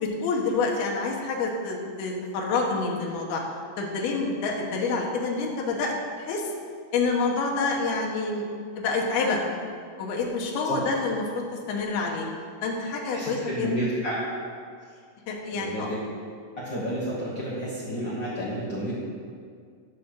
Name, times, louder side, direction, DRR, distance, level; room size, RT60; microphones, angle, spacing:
voice 1, 0.0-3.4 3.8-6.5 6.9-8.5 8.8-9.4 10.0-11.4 11.7-12.3 12.6-13.7 15.3-15.9, left 4 dB, 85° left, -1 dB, 3.0 m, -27 dB
voice 2, 13.1-14.2 15.5-15.8 16.6-18.9, equal, 55° left, -8 dB, 1.3 m, -30 dB
11.0 x 6.6 x 4.4 m, 2.1 s
omnidirectional pair, 4.3 m